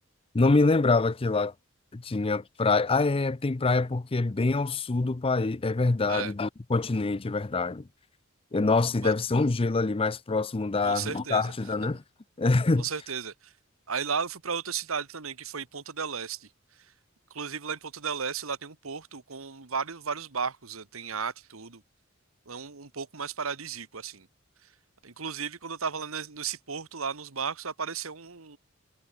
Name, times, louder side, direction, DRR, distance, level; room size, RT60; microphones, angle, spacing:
voice 1, 0.3-1.5 1.9-7.9 8.5-12.0 12.4-12.8, left 3 dB, 25° left, 0.5 m, -25 dB
voice 2, 10.8-11.5 12.8-13.5 13.9-16.9 17.3-21.8 22.5-24.3 24.6-24.7 25.0-28.6, right 6 dB, 80° right, 1.5 m, -34 dB
head